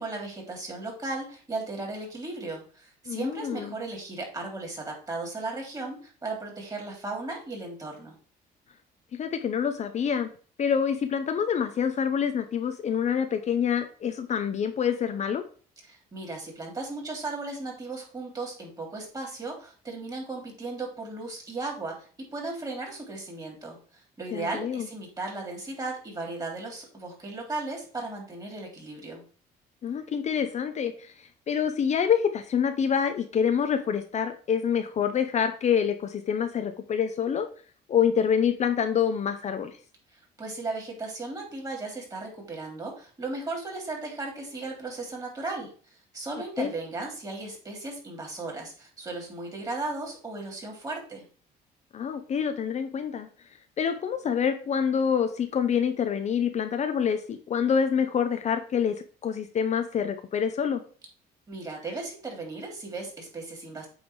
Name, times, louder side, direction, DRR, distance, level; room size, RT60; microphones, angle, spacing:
voice 1, 0.0-8.1 15.9-23.8 24.2-29.2 40.1-45.7 46.1-51.2 61.5-63.9, right 3 dB, 20° right, 0 dB, 3.4 m, -36 dB
voice 2, 3.1-3.8 9.1-10.3 10.6-15.4 24.3-24.9 29.8-37.5 37.9-39.8 46.6-46.7 51.9-53.3 53.8-59.0 59.2-60.8, left 7 dB, 45° left, 7 dB, 0.8 m, -26 dB
8.7 x 3.6 x 4.8 m, 0.42 s
cardioid pair, 110°, 17 cm